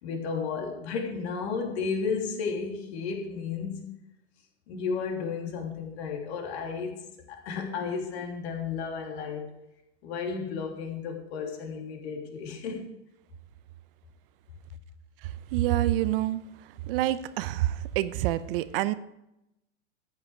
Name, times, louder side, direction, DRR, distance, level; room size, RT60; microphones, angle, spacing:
voice 1, 0.0-3.9 4.7-9.5 10.0-12.9, left 5 dB, 60° left, 2 dB, 3.3 m, -33 dB
voice 2, 15.5-16.4 16.9-18.9, right 14 dB, 50° right, 15 dB, 0.7 m, -27 dB
13.5 x 8.9 x 5.0 m, 0.87 s
hypercardioid pair, 105°, 37 cm